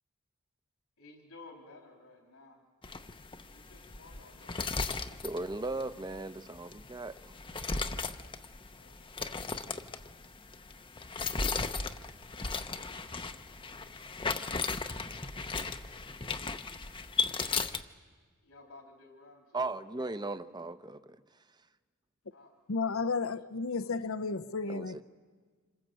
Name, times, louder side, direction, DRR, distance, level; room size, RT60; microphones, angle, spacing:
voice 1, 1.0-2.6 3.5-5.4 8.8-9.4 18.4-19.7 22.3-23.2 23.7-24.2 24.6-25.0, left 3 dB, 85° left, 3.7 m, -56 dB
sound 1, 2.8-17.8, left 4 dB, 25° left, 0.8 m, -36 dB
voice 2, 5.2-7.3 16.9-17.0 19.5-21.7 24.7-25.0, right 2 dB, 20° right, 0.8 m, -38 dB
voice 3, 22.7-25.0, left 4 dB, 70° left, 0.7 m, -33 dB
27.0 x 25.5 x 7.7 m
head